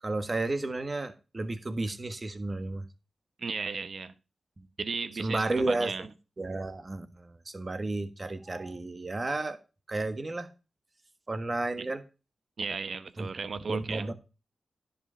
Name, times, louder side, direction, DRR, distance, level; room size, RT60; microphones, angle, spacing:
voice 1, 0.0-2.9 4.6-4.7 5.2-6.1 6.4-9.6 9.9-10.5 11.3-12.0 13.2-13.3 13.7-14.1, right 2 dB, 40° right, 1.4 m, -32 dB
voice 2, 3.4-4.1 4.8-6.0 11.8-11.9 12.6-14.1, right 4 dB, 65° right, 0.9 m, -35 dB
10.5 x 5.3 x 5.6 m
cardioid pair, 55°, 0 cm